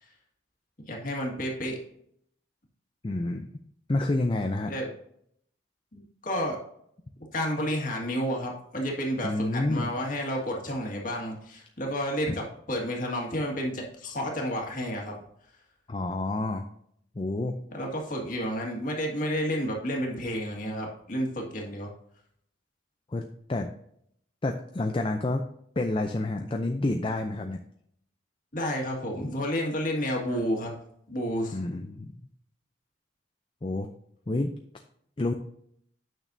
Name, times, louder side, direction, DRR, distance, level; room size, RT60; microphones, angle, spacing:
voice 1, 0.8-1.8 4.7-4.9 5.9-6.6 7.3-15.1 17.7-21.9 28.5-30.7 31.1-31.6, equal, 45° left, 0 dB, 1.9 m, -31 dB
voice 2, 3.0-3.5 3.9-4.7 9.2-9.9 12.3-12.4 15.9-16.6 17.2-17.6 23.1-23.7 24.4-25.4 25.8-27.6 31.5-32.1 33.6-33.9 34.3-34.5 35.2-35.3, left 2 dB, 30° left, 5 dB, 0.5 m, -29 dB
9.0 x 6.3 x 2.7 m, 0.69 s
head